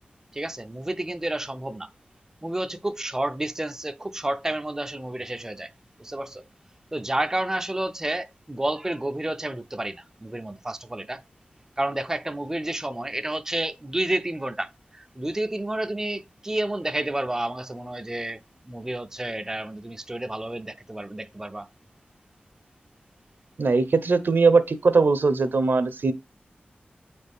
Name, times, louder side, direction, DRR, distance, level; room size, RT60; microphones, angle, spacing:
voice 1, 0.4-1.9 2.4-5.7 6.0-6.4 6.9-11.2 11.8-14.7 15.2-18.4 18.7-21.7, right 1 dB, 15° right, 0.4 m, -30 dB
voice 2, 23.6-26.1, right 4 dB, 65° right, 0.7 m, -20 dB
8.6 x 4.2 x 3.5 m
wide cardioid pair, 95°, 4 cm